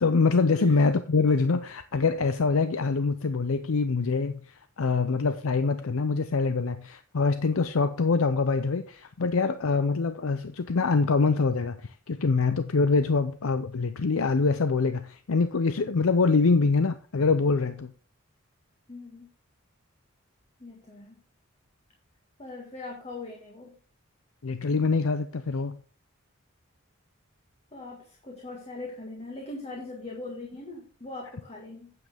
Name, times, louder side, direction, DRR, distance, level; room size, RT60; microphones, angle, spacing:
voice 1, 0.0-17.9 24.4-25.8, left 4 dB, 80° left, 11 dB, 0.6 m, -24 dB
voice 2, 18.9-19.3 20.6-21.2 22.4-23.7 27.7-31.9, left 2 dB, 30° left, -1 dB, 1.7 m, -40 dB
9.2 x 7.8 x 3.5 m, 0.39 s
head